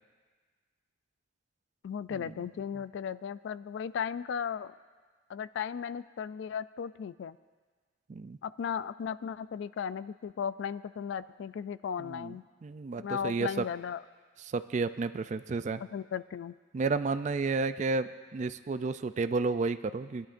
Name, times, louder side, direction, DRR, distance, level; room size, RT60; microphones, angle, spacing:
voice 1, 1.8-4.7 5.3-7.4 8.4-12.4 13.0-14.0 15.8-16.5, left 7 dB, 75° left, 16 dB, 0.3 m, -36 dB
voice 2, 12.0-12.3 12.6-13.5 14.5-15.8 16.7-20.3, right 4 dB, 40° right, 12 dB, 0.3 m, -31 dB
20.0 x 11.0 x 2.6 m, 1.5 s
head